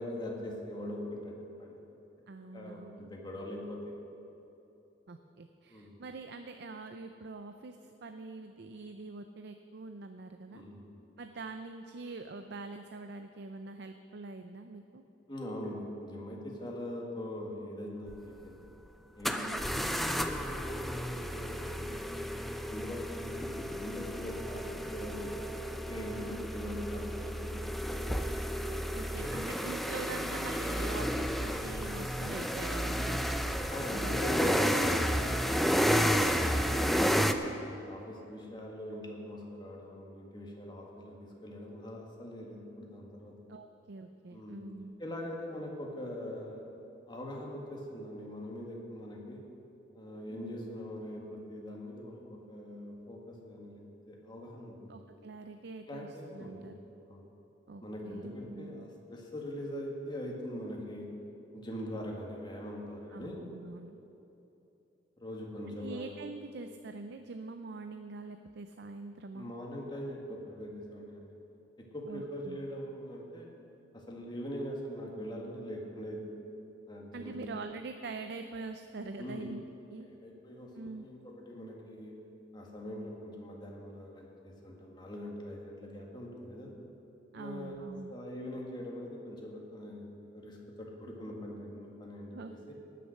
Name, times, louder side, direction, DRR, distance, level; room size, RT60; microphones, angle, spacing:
voice 1, 0.0-1.3 1.6-1.8 2.5-3.9 5.7-5.9 10.5-10.8 15.3-18.6 19.2-19.5 20.2-22.0 22.7-25.4 25.9-28.0 33.7-35.1 35.5-37.4 37.8-43.3 44.3-44.6 45.0-46.7 47.1-49.4 49.9-55.0 55.9-56.8 57.1-57.2 57.8-61.1 61.5-63.4 65.2-66.1 69.3-71.3 71.8-73.5 73.9-76.3 76.9-77.4 79.2-79.5 80.1-82.2 82.5-86.7 87.3-92.7, equal, 25° left, -1 dB, 1.9 m, -42 dB
voice 2, 2.3-3.0 5.1-10.6 11.2-15.0 19.4-19.9 26.1-26.4 28.9-33.4 33.9-34.5 34.9-35.0 43.5-45.0 50.3-50.7 54.9-56.1 56.3-56.7 57.7-58.9 63.1-64.0 65.8-69.5 72.1-72.6 77.1-79.6 79.9-80.1 80.7-81.0 87.3-88.1 92.3-92.5, right 3 dB, 60° right, 7 dB, 0.5 m, -44 dB
sound 1, 18.1-18.2 19.2-37.3, equal, ahead, 0.5 m, -32 dB
18.0 x 6.7 x 6.5 m, 3.0 s
head